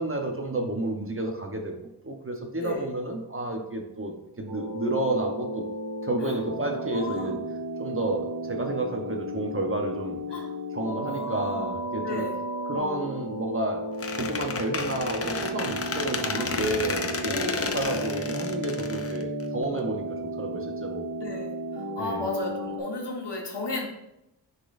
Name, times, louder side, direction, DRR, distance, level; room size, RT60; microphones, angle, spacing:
voice 1, 0.0-5.6 6.0-7.4 7.8-10.2 10.7-12.2 12.7-13.8 14.1-20.0 20.4-21.1 22.0-22.2, right 2 dB, 30° right, 2 dB, 0.9 m, -31 dB
sound 1, 4.5-22.8, equal, 70° right, 1.3 m, -34 dB
voice 2, 6.7-7.3 10.3-10.5 11.0-11.7 12.0-12.4 16.3-16.5 17.2-17.8 21.2-23.9, left 2 dB, 70° left, 0 dB, 1.5 m, -34 dB
Squeak, 14.0-19.8, left 4 dB, 35° left, 0.5 m, -32 dB
9.7 x 4.1 x 2.6 m, 0.88 s
wide cardioid pair, 80°, 42 cm